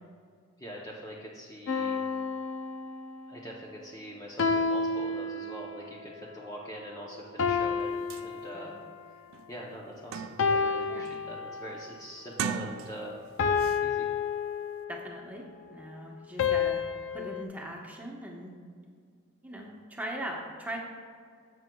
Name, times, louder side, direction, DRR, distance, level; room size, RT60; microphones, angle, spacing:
voice 1, 0.6-2.0 3.3-8.8 9.5-13.2 13.8-14.1, equal, 15° left, -3 dB, 0.7 m, -43 dB
sound 1, 1.7-3.3 4.4-5.9 7.4-9.1 10.4-11.9 13.4-15.1 16.4-17.4, left 5 dB, 60° left, 0.5 m, -30 dB
sound 2, 7.8-7.9 8.1-8.3 8.8-8.9 9.3-10.7 11.1-11.4 12.2-13.2 13.6-13.8, right 7 dB, 70° right, 0.4 m, -38 dB
voice 2, 14.9-16.8 17.1-18.5 19.4-20.8, right 1 dB, 10° right, -1 dB, 1.0 m, -40 dB
10.5 x 7.6 x 2.3 m, 2.1 s
head